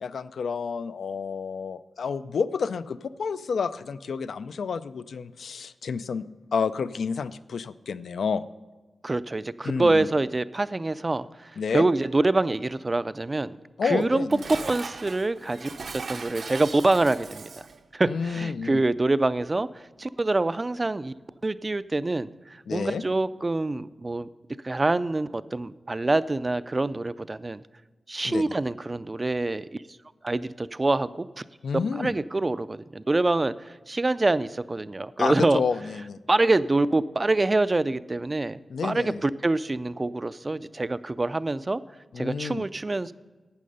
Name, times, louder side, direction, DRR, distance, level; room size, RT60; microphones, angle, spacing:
voice 1, 0.0-6.3 6.5-8.5 9.6-10.1 11.6-11.8 13.8-14.4 18.1-18.8 22.7-23.0 28.2-28.5 31.6-32.1 35.2-36.2 38.7-39.2 42.1-42.6, left 5 dB, 85° left, 13 dB, 0.4 m, -29 dB
voice 2, 9.0-13.6 13.8-14.3 14.6-17.5 17.9-19.7 20.0-21.1 21.4-24.3 24.6-27.6 28.1-29.7 30.2-31.3 32.0-35.6 36.3-41.8 42.2-43.1, right 2 dB, 25° right, 16 dB, 0.3 m, -25 dB
Dishes pots and pans, 14.0-17.8, right 4 dB, 65° right, 0.6 m, -39 dB
11.5 x 8.5 x 5.4 m, 1.3 s
wide cardioid pair, 135°, 0 cm